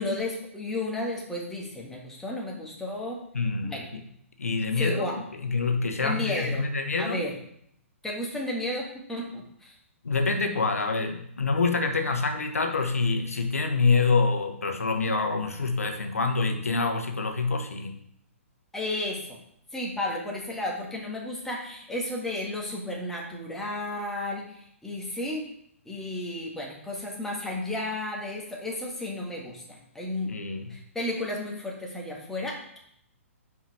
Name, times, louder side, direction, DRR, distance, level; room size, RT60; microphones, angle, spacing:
voice 1, 0.0-3.2 3.6-3.9 4.8-5.2 6.0-6.7 7.0-7.3 8.0-9.7 18.7-19.4 19.7-25.4 25.8-30.3 30.7-32.8, left 1 dB, 5° left, -3 dB, 1.6 m, -33 dB
voice 2, 3.3-4.0 4.4-7.3 10.0-17.9 30.3-30.8, left 4 dB, 85° left, 5 dB, 1.1 m, -26 dB
5.7 x 5.0 x 4.8 m, 0.70 s
hypercardioid pair, 125°, 8 cm